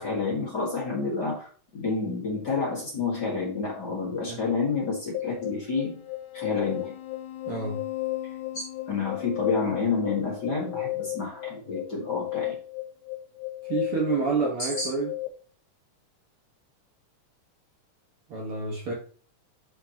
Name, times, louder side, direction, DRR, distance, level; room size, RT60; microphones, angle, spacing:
voice 1, 0.0-6.0 6.3-6.9 8.5-12.5 14.6-14.9, left 4 dB, 35° left, 2.3 m, -29 dB
sound 1, 5.1-15.3, left 17 dB, 80° left, 1.2 m, -34 dB
voice 2, 7.5-7.8 13.6-15.1 18.3-18.9, right 4 dB, 50° right, 2.1 m, -28 dB
10.0 x 5.1 x 3.0 m
omnidirectional pair, 3.7 m